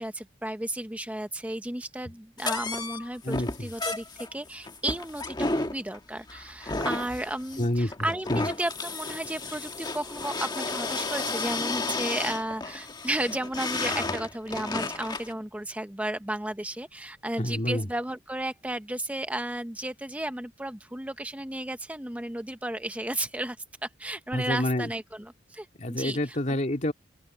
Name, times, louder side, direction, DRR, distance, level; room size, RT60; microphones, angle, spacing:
voice 1, 0.0-23.6 23.8-26.4, right 1 dB, 10° right, 0.7 m, -33 dB
sound 1, 2.4-15.3, left 3 dB, 25° left, 1.5 m, -33 dB
voice 2, 3.2-3.7 7.6-8.4 17.4-17.9 24.3-24.9 25.8-26.9, left 1 dB, 40° left, 2.2 m, -28 dB
open air
head